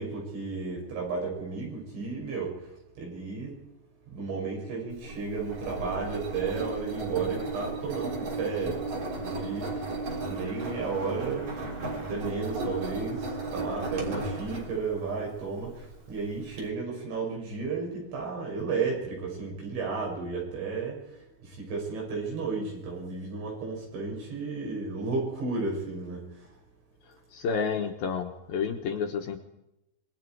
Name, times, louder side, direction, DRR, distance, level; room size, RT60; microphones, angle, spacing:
voice 1, 0.0-2.5 3.0-3.5 4.1-8.8 9.2-9.7 10.3-11.5 12.1-21.0 21.6-26.2, right 4 dB, 80° right, -1 dB, 9.0 m, -33 dB
Engine, 4.9-16.6, right 2 dB, 40° right, 4.5 m, -35 dB
voice 2, 27.3-29.4, left 6 dB, 65° left, 4 dB, 2.6 m, -30 dB
26.0 x 22.0 x 4.8 m, 0.89 s
omnidirectional pair, 5.2 m